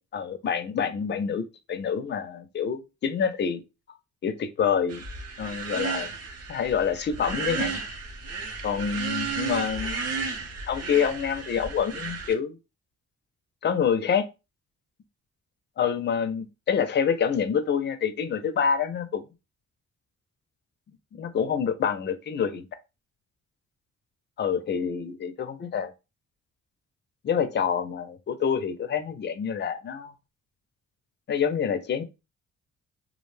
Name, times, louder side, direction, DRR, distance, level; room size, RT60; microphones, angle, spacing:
voice 1, 0.0-1.4 1.7-3.6 4.2-5.0 5.4-6.1 6.5-7.8 8.6-10.0 10.7-12.6 13.6-14.3 15.8-19.2 21.1-22.7 24.4-25.3 25.6-25.9 27.2-30.1 31.3-32.0, left 7 dB, 40° left, 0.4 m, -27 dB
sound 1, 4.9-12.3, right 5 dB, 55° right, 0.7 m, -33 dB
2.4 x 2.1 x 3.1 m
cardioid pair, 125°, 30 cm